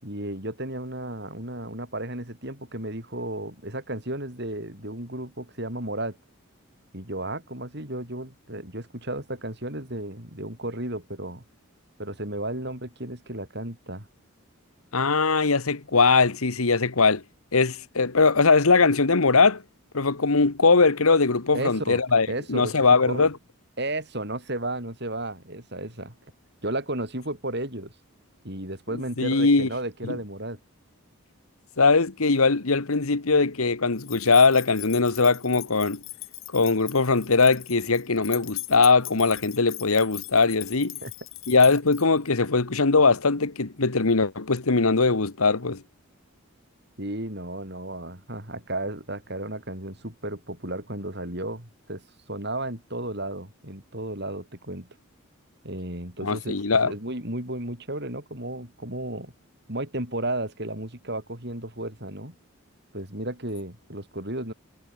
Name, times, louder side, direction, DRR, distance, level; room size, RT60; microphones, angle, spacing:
voice 1, 0.0-6.2 6.9-11.4 12.0-14.1 21.5-22.0 22.3-22.8 23.1-23.3 23.8-26.1 26.6-27.9 28.4-30.6 41.0-41.1 47.0-54.9 55.6-59.3 59.7-62.3 62.9-64.5, right 1 dB, 50° right, 8.0 m, -33 dB
voice 2, 14.9-17.2 17.5-19.6 19.9-23.3 29.2-29.7 30.1-30.2 31.8-36.0 36.5-41.0 41.5-45.8 56.2-56.9, left 4 dB, 85° left, 1.4 m, -21 dB
sound 1, 34.0-42.3, left 17 dB, 70° left, 4.6 m, -40 dB
head